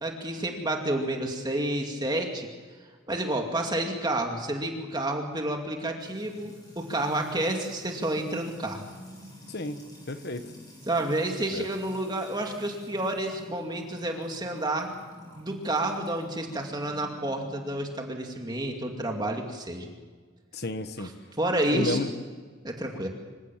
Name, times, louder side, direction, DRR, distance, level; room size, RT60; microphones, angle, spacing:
voice 1, 0.0-2.5 3.1-8.9 10.9-14.9 15.3-19.9 21.0-21.1 21.4-22.0 22.6-23.1, right 1 dB, 20° right, 2 dB, 2.4 m, -30 dB
Music / Water tap faucet / Trickle dribble, 6.0-17.8, equal, 20° left, 7.7 m, -48 dB
voice 2, 9.5-9.8 10.1-10.5 11.5-11.7 20.5-21.1 21.7-22.1, left 2 dB, 50° left, 9 dB, 1.4 m, -32 dB
25.5 x 17.0 x 7.6 m, 1.5 s
head